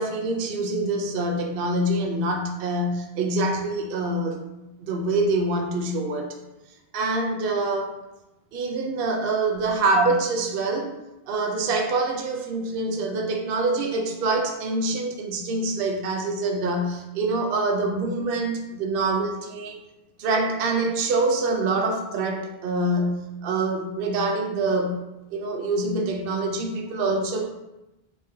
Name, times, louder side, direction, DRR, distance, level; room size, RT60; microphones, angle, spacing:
voice 1, 0.0-4.4 4.8-6.4 6.9-8.0 8.5-10.9 11.3-19.8 20.2-25.1 25.3-27.5, right 2 dB, 65° right, 3 dB, 0.7 m, -25 dB
3.5 x 3.2 x 2.7 m, 0.97 s
omnidirectional pair, 1.1 m